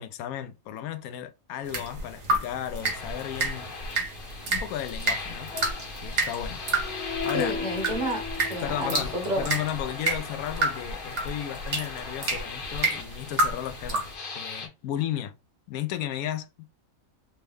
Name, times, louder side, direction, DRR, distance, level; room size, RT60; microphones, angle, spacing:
voice 1, 0.0-3.7 4.5-5.5 6.0-6.6 7.2-7.5 8.6-14.1 14.3-15.3 15.7-16.5, left 11 dB, 90° left, 1.0 m, -34 dB
sound 1, 1.7-14.1, right 2 dB, 55° right, 1.4 m, -31 dB
sound 2, 2.8-14.7, left 5 dB, 45° left, 0.9 m, -37 dB
voice 2, 7.3-9.5, right 1 dB, 35° right, 1.1 m, -30 dB
4.4 x 2.1 x 3.4 m
omnidirectional pair, 1.5 m